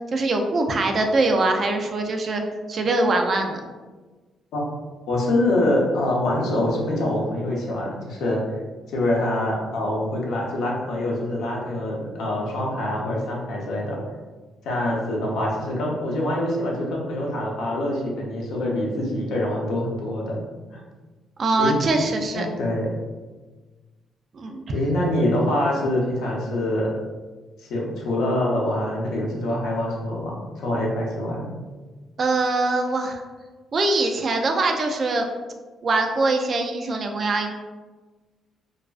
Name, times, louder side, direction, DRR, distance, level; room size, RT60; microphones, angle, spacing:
voice 1, 0.1-2.4 2.7-3.6 21.4-22.5 24.3-24.6 32.2-33.2 33.7-35.3 35.8-37.5, right 2 dB, 45° right, 4 dB, 0.3 m, -22 dB
voice 2, 5.1-8.4 8.9-14.1 14.6-20.4 20.7-20.8 21.6-21.8 22.3-22.9 24.7-26.9 27.6-31.5, left 1 dB, 80° left, -2 dB, 0.6 m, -25 dB
2.3 x 2.3 x 2.4 m, 1.3 s
cardioid pair, 90°, 0 cm